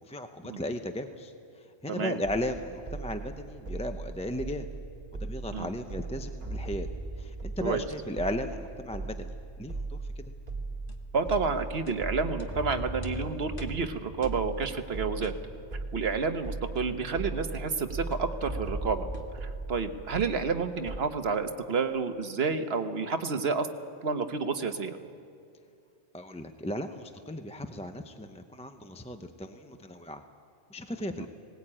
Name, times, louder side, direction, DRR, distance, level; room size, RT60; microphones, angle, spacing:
voice 1, 0.0-4.7 5.1-6.9 7.2-9.3 9.6-10.3 26.1-30.2 30.7-31.3, left 1 dB, 5° left, 6 dB, 0.5 m, -36 dB
voice 2, 1.9-2.2 5.5-5.7 7.6-7.8 11.1-15.3 15.9-19.1 19.4-23.7 24.0-25.0 31.2-31.3, right 4 dB, 55° right, 8 dB, 1.3 m, -30 dB
sound 1, 2.2-21.0, right 3 dB, 35° right, 2.0 m, -38 dB
sound 2, 10.9-11.0 11.3-11.5 11.9-12.0 12.4-12.5 13.0-13.1 13.6-13.8 14.2-14.5 15.2-15.5 16.7-17.0 18.1-18.3 19.1-19.4, left 2 dB, 45° left, 1.3 m, -47 dB
19.0 x 19.0 x 8.8 m, 2.5 s
omnidirectional pair, 1.3 m